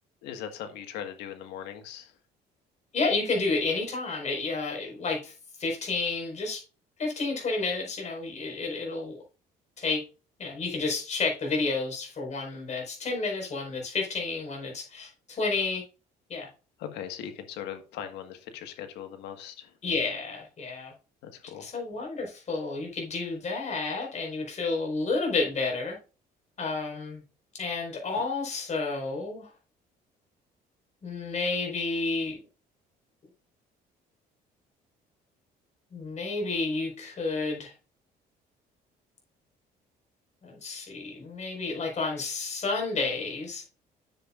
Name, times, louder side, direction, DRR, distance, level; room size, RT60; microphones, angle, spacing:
voice 1, 0.2-2.1 16.8-19.7 21.2-21.7, left 9 dB, 90° left, 7 dB, 1.7 m, -39 dB
voice 2, 2.9-5.3 5.6-6.6 7.0-9.2 9.8-10.0 10.4-15.8 16.3-16.5 19.8-20.9 21.6-26.0 26.6-27.2 27.5-29.5 31.0-32.4 35.9-37.7 40.4-43.6, left 3 dB, 45° left, 1 dB, 5.0 m, -30 dB
9.8 x 7.4 x 2.5 m, 0.33 s
cardioid pair, 110°, 17 cm